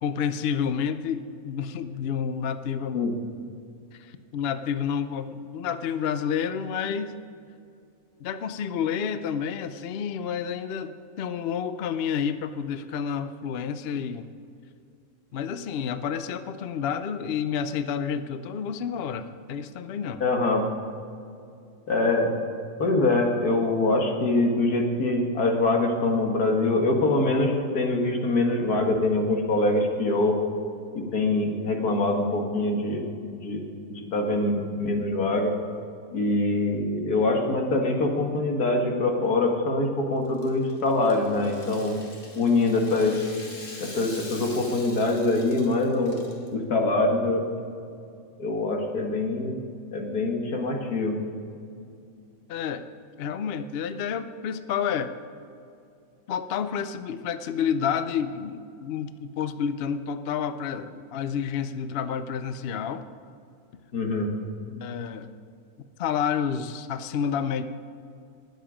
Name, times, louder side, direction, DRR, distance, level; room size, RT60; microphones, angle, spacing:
voice 1, 0.0-3.1 3.9-7.2 8.2-14.3 15.3-20.2 52.5-52.9 53.2-55.1 56.3-63.1 64.7-65.3 66.0-67.6, left 7 dB, 55° left, 11 dB, 0.7 m, -29 dB
voice 2, 20.2-20.7 21.9-22.3 22.8-30.4 31.0-33.6 33.9-35.5 36.1-42.0 42.4-43.2 43.8-46.2 46.5-47.4 48.4-49.5 49.9-51.2 63.9-64.3, left 2 dB, 85° left, 2 dB, 2.2 m, -24 dB
Rattle (instrument), 40.2-46.5, left 2 dB, 35° left, 1.9 m, -44 dB
20.0 x 7.9 x 5.1 m, 2.5 s
omnidirectional pair, 1.6 m